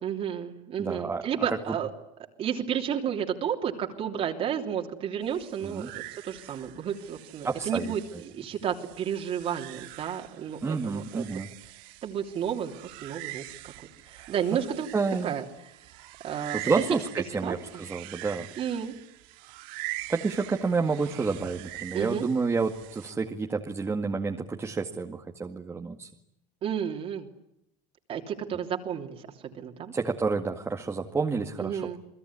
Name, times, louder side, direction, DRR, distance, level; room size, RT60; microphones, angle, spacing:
voice 1, 0.0-1.9 2.4-11.3 12.0-13.7 14.0-14.9 15.2-15.8 16.2-16.8 17.4-17.8 18.6-18.9 21.9-22.3 26.6-27.3 28.1-29.9 31.6-32.0, right 8 dB, 40° right, 1 dB, 3.2 m, -32 dB
voice 2, 0.8-1.2 1.7-1.8 5.6-5.9 7.4-7.9 10.6-11.5 14.9-15.3 16.5-18.5 20.1-26.1 29.9-32.0, right 4 dB, 15° right, 2 dB, 2.0 m, -29 dB
sound 1, 5.2-23.1, right 20 dB, 70° right, 1.7 m, -44 dB
29.5 x 20.5 x 9.9 m, 0.79 s
cardioid pair, 135°, 15 cm